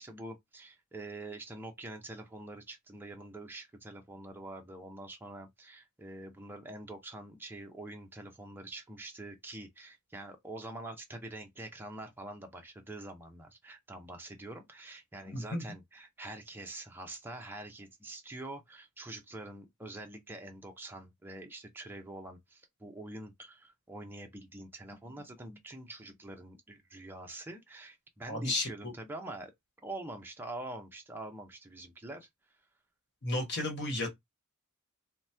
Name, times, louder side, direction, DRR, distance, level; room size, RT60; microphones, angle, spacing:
voice 1, 0.0-29.5 29.8-32.3, right 2 dB, 10° right, 0.5 m, -45 dB
voice 2, 15.3-15.6 28.3-28.9 33.2-34.1, left 2 dB, 50° left, 1.1 m, -33 dB
2.9 x 2.1 x 3.2 m
head